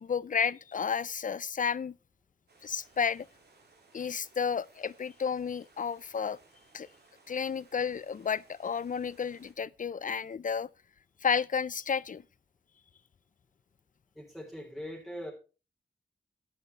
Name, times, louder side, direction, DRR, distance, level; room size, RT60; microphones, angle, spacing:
voice 1, 0.0-1.9 2.6-3.3 3.9-6.4 6.7-6.9 7.3-10.7 11.2-12.2, left 6 dB, 50° left, 0.4 m, -32 dB
sound 1, 2.5-9.5, right 3 dB, 70° right, 3.8 m, -62 dB
voice 2, 14.2-15.3, equal, ahead, 3.6 m, -41 dB
11.5 x 11.0 x 3.3 m
wide cardioid pair, 115°, 18 cm